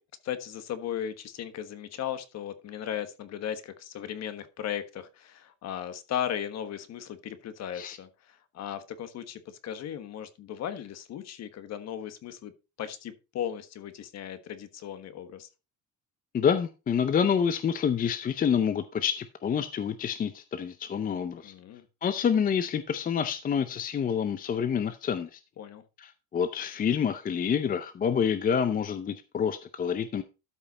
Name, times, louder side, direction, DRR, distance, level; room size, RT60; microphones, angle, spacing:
voice 1, 0.2-12.5 12.8-15.5 21.4-21.8 25.6-25.8, left 10 dB, 50° left, 1.3 m, -36 dB
voice 2, 16.3-21.5 22.0-25.4 26.0-30.2, left 7 dB, 25° left, 0.5 m, -27 dB
13.0 x 5.5 x 4.1 m
cardioid pair, 160°, 34 cm